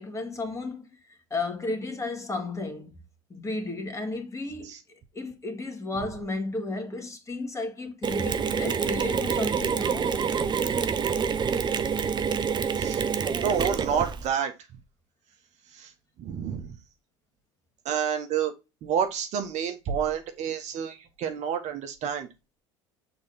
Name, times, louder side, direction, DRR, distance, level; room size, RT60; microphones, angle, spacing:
voice 1, 0.0-2.9 3.3-4.7 5.1-10.2, left 2 dB, 20° left, 2.1 m, -33 dB
Mechanisms, 8.0-14.3, right 6 dB, 30° right, 0.8 m, -27 dB
voice 2, 13.3-14.5 15.7-15.9 16.2-16.8 17.8-18.5 18.8-22.3, right 7 dB, 45° right, 1.2 m, -29 dB
6.9 x 3.9 x 4.0 m
hypercardioid pair, 75°, 16 cm